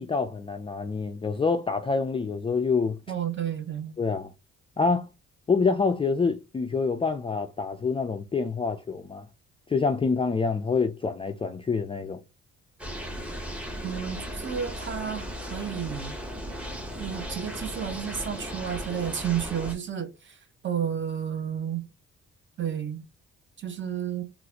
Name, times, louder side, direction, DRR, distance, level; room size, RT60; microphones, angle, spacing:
voice 1, 0.0-3.0 4.0-4.3 4.8-5.1 5.5-9.3 9.7-12.2, left 4 dB, 20° left, 0.3 m, -26 dB
voice 2, 3.1-3.9 13.8-16.1 17.0-20.4 20.6-21.9 22.6-23.0 23.6-24.2, right 8 dB, 40° right, 0.8 m, -31 dB
sound 1, 12.8-19.7, equal, 5° right, 0.9 m, -36 dB
3.8 x 2.4 x 2.8 m
cardioid pair, 90°, 30 cm